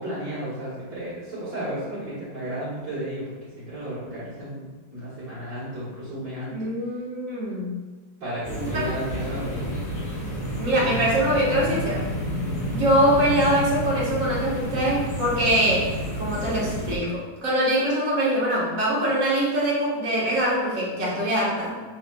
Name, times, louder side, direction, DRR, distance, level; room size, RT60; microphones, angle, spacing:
voice 1, 0.0-6.7 8.2-9.7, right 1 dB, 70° right, -12 dB, 2.1 m, -33 dB
voice 2, 6.5-7.8 8.7-8.8 10.6-12.0 12.7-15.9 16.1-21.8, right 1 dB, 50° right, -6 dB, 1.6 m, -23 dB
sound 1, 8.4-17.0, equal, 40° left, 1.6 m, -30 dB
5.9 x 3.5 x 2.2 m, 1.3 s
omnidirectional pair, 2.0 m